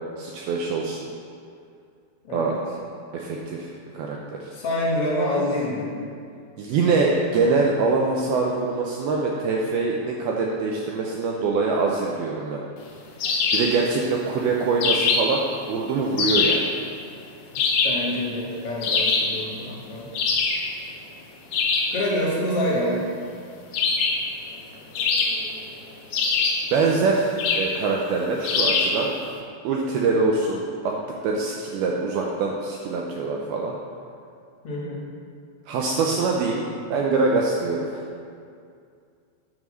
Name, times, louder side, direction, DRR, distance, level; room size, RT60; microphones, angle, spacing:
voice 1, 0.2-1.1 2.3-2.5 3.1-3.7 3.9-4.5 6.6-12.6 13.5-15.4 15.7-16.7 26.7-29.1 29.6-31.0 31.2-33.8 35.7-38.0, right 4 dB, 85° right, -1 dB, 2.1 m, -24 dB
voice 2, 2.2-2.5 4.5-5.9 17.8-20.1 21.9-23.0 34.6-35.0, left 1 dB, 60° left, -5 dB, 1.5 m, -26 dB
sound 1, 13.2-13.8 14.8-15.4 16.2-16.7 17.5-18.1 18.8-19.4 20.1-20.7 21.5-22.0 23.7-24.3 24.9-25.6 26.1-26.7 27.4-27.7 28.4-29.0, left 4 dB, 80° left, 1.8 m, -22 dB
9.3 x 5.6 x 6.2 m, 2.3 s
omnidirectional pair, 5.2 m